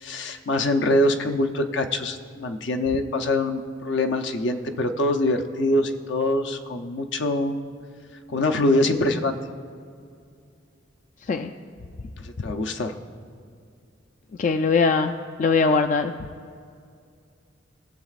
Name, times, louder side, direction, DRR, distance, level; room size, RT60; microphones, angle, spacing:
voice 1, 0.0-7.6 8.3-9.3 12.2-13.0, left 1 dB, 65° left, 5 dB, 0.7 m, -24 dB
voice 2, 14.4-15.1 15.4-16.1, left 4 dB, 40° left, 6 dB, 0.3 m, -21 dB
21.0 x 7.1 x 2.5 m, 2.3 s
head